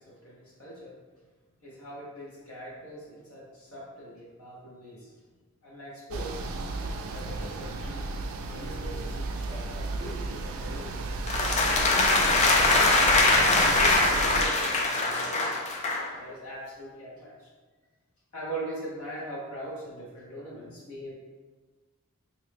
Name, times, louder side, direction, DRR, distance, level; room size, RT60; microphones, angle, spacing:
voice 1, 0.1-1.0 1.6-5.1 5.6-6.4 7.1-8.0 8.5-10.9 11.7-12.7 13.3-15.5 16.1-17.5 18.3-21.1, right 1 dB, 70° left, -5 dB, 0.9 m, -41 dB
sound 1, 6.1-14.5, right 3 dB, 65° right, 0.3 m, -34 dB
sound 2, 11.3-16.1, left 2 dB, 30° left, 0.3 m, -22 dB
3.0 x 2.7 x 3.3 m, 1.3 s
head